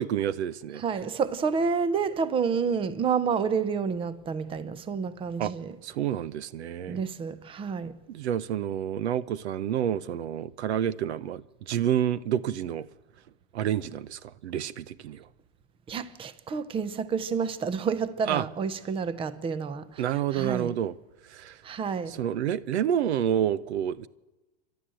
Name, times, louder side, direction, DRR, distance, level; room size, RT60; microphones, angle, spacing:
voice 1, 0.0-0.8 5.4-5.5 5.8-7.0 8.1-12.9 13.5-15.2 18.3-18.4 20.0-20.9 21.3-21.6 22.1-24.1, right 10 dB, 80° right, 1.0 m, -29 dB
voice 2, 0.8-5.8 6.9-8.0 15.9-20.8 21.6-22.2, right 6 dB, 15° right, 0.8 m, -29 dB
28.5 x 12.0 x 7.7 m
supercardioid pair, 140°, 33 cm